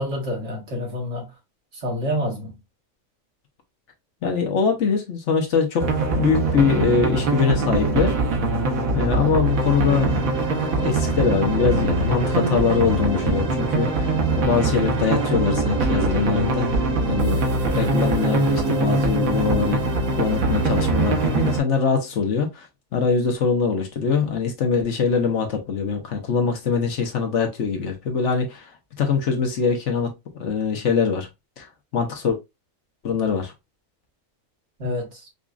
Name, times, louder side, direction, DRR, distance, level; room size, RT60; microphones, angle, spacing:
voice 1, 0.0-1.3 1.7-2.6 34.8-35.2, equal, 55° right, 1.6 m, -28 dB
voice 2, 4.2-8.2 8.9-10.2 10.6-14.1 14.4-16.8 17.1-19.8 20.1-22.7 22.9-28.7 29.0-31.3 31.6-31.7 31.9-32.4 33.0-33.5, left 5 dB, 60° left, 1.1 m, -23 dB
sound 1, 5.8-21.6, right 2 dB, 80° right, 1.4 m, -22 dB
5.0 x 2.4 x 2.4 m
omnidirectional pair, 1.4 m